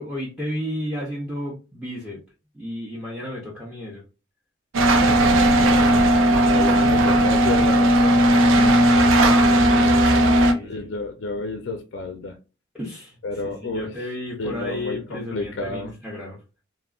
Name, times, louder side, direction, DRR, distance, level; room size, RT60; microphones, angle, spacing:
voice 1, 0.0-2.2 2.5-4.0 8.5-10.9 12.7-16.6, left 1 dB, 5° right, -5 dB, 0.5 m, -33 dB
sound 1, 4.7-10.5, right 1 dB, 90° right, 0.4 m, -16 dB
voice 2, 6.4-8.4 10.6-12.4 13.2-13.9 14.4-15.9, left 3 dB, 70° left, 6 dB, 0.4 m, -31 dB
3.5 x 2.1 x 2.3 m, 0.31 s
head